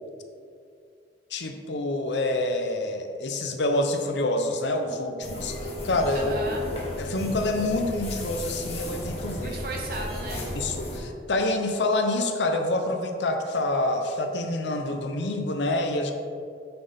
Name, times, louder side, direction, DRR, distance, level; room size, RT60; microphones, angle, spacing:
voice 1, 1.3-6.3 7.0-9.6 10.5-16.1, left 2 dB, 80° left, 5 dB, 0.6 m, -27 dB
sound 1, 5.2-11.0, equal, 35° left, 1.0 m, -34 dB
voice 2, 6.1-6.7 9.4-10.5, right 2 dB, 55° right, 0 dB, 1.0 m, -35 dB
5.9 x 5.4 x 3.4 m, 2.4 s
head